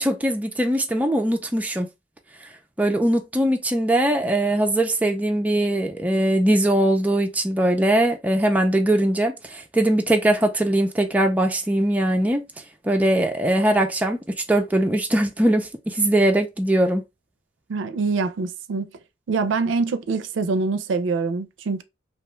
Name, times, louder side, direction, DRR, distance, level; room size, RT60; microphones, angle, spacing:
voice 1, 0.0-1.9 2.8-12.4 12.8-17.0, right 1 dB, 10° right, 0.3 m, -21 dB
voice 2, 17.7-18.9 19.3-21.8, right 4 dB, 85° right, 0.4 m, -24 dB
2.7 x 2.2 x 3.0 m
head